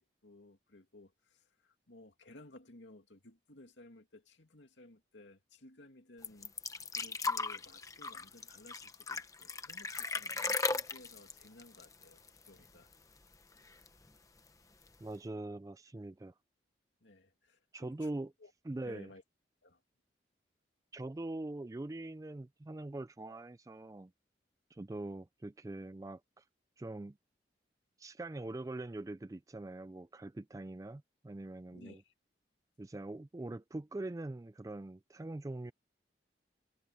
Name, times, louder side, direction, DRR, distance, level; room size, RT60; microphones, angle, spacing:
voice 1, 0.0-6.6 6.9-12.9 17.0-18.1 18.4-18.5 18.8-19.2 19.6-19.8 31.7-32.1, left 2 dB, 85° left, 2.6 m, -57 dB
sound 1, 6.2-12.7 12.9-13.0 13.3-14.1 14.9-15.0, left 4 dB, 20° left, 0.9 m, -37 dB
voice 2, 15.0-16.3 17.7-18.3 18.6-19.1 20.9-24.1 24.7-26.4 26.8-27.2 28.0-32.0 32.8-35.7, right 2 dB, 20° right, 0.3 m, -43 dB
head